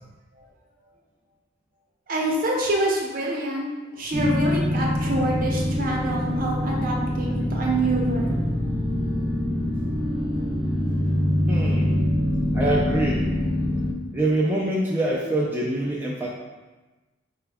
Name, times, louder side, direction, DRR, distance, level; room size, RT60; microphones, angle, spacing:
voice 1, 2.1-8.4, right 1 dB, 45° right, -2 dB, 0.7 m, -26 dB
sound 1, 4.1-13.9, left 1 dB, 25° left, 0.8 m, -24 dB
voice 2, 11.5-12.1 12.5-13.3 14.1-16.3, right 1 dB, 10° right, -5 dB, 0.3 m, -25 dB
4.8 x 2.3 x 3.4 m, 1.2 s
head